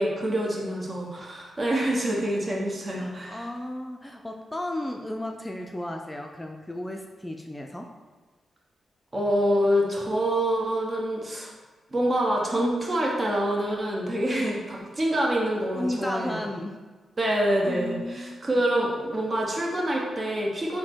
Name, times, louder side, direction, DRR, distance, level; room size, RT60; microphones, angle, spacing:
voice 1, 0.0-3.4 9.1-11.5 11.9-16.5 17.2-20.8, right 1 dB, 40° right, -2 dB, 1.0 m, -26 dB
voice 2, 2.9-7.9 15.7-16.8 17.7-18.6, left 1 dB, 15° left, 2 dB, 0.4 m, -34 dB
4.0 x 2.1 x 4.5 m, 1.3 s
supercardioid pair, 45°, 0 cm